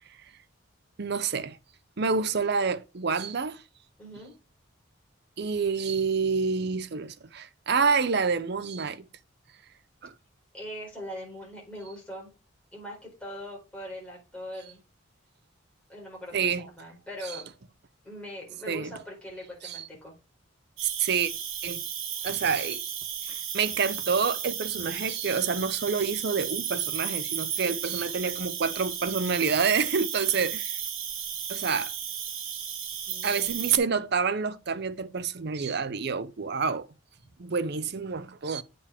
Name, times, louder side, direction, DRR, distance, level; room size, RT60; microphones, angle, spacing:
voice 1, 1.0-1.6 2.0-3.6 5.4-9.1 10.0-10.1 16.3-16.6 17.2-17.4 18.7-18.9 19.6-19.9 21.0-21.3 21.6-21.8 22.2-22.8 23.3-30.8 31.5-31.9 33.2-36.9 37.4-38.6, right 5 dB, 50° right, 0.6 m, -28 dB
voice 2, 4.0-4.3 10.5-12.3 12.7-14.8 15.9-17.4 18.0-20.1 33.1-33.8, equal, 5° left, 4.5 m, -41 dB
Cricket, 20.8-33.8, right 8 dB, 75° right, 1.5 m, -34 dB
8.4 x 5.1 x 3.4 m
head